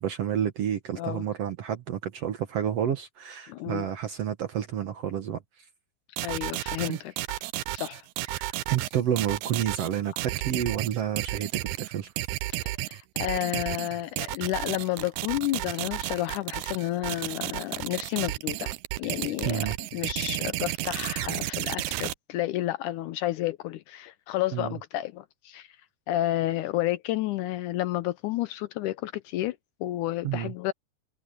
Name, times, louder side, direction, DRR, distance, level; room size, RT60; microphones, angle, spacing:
voice 1, 0.0-5.4 6.9-7.0 8.3-12.1 19.4-19.8 24.5-24.8 30.2-30.5, right 9 dB, 60° right, 1.8 m, -30 dB
voice 2, 1.0-1.3 3.5-3.9 6.2-7.1 7.7-8.0 12.6-18.7 19.0-19.7 19.9-25.7 26.1-30.7, left 15 dB, 80° left, 1.9 m, -31 dB
sound 1, 6.2-22.1, right 18 dB, 80° right, 1.8 m, -32 dB
omnidirectional pair, 4.0 m